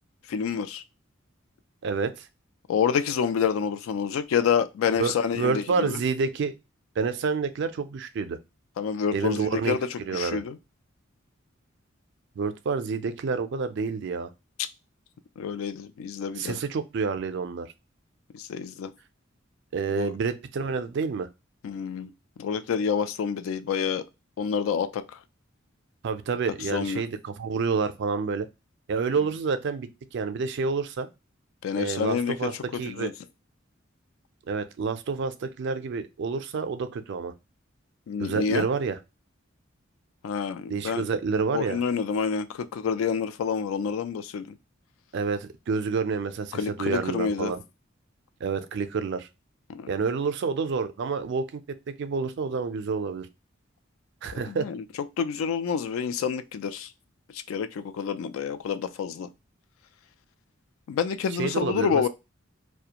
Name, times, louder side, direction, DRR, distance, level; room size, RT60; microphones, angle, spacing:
voice 1, 0.3-0.8 2.7-6.0 8.8-10.6 15.4-16.6 18.3-18.9 20.0-20.1 21.6-22.1 22.4-24.0 24.4-25.2 26.7-27.0 29.2-29.3 31.6-32.3 32.7-33.1 38.1-38.7 40.2-41.1 41.5-44.5 46.5-47.5 49.7-49.9 54.3-54.8 55.2-56.9 57.3-59.3 60.9-62.1, left 6 dB, 80° left, 0.3 m, -28 dB
voice 2, 1.8-2.3 5.0-6.5 7.0-8.4 9.1-10.4 12.4-14.3 16.4-17.7 19.7-21.3 26.0-28.5 28.9-31.1 31.7-32.5 32.8-33.1 34.5-37.3 38.2-39.0 40.7-41.8 45.1-47.6 48.4-49.3 49.9-51.6 51.9-53.3 54.2-54.7 61.4-62.1, right 5 dB, 60° right, 0.4 m, -28 dB
2.4 x 2.1 x 2.8 m
head